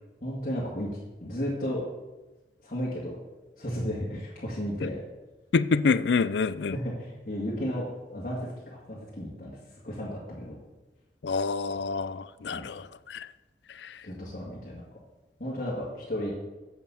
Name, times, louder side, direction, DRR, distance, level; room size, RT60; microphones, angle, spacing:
voice 1, 0.2-0.9 1.2-1.8 2.6-3.2 3.6-5.0 6.7-9.5 9.8-10.6 12.4-12.7 14.0-14.8 15.4-16.3, equal, 45° left, 2.1 m, -33 dB
voice 2, 5.5-6.8 11.2-13.3 13.8-13.9, left 4 dB, 75° left, 0.5 m, -27 dB
8.1 x 7.0 x 7.0 m
head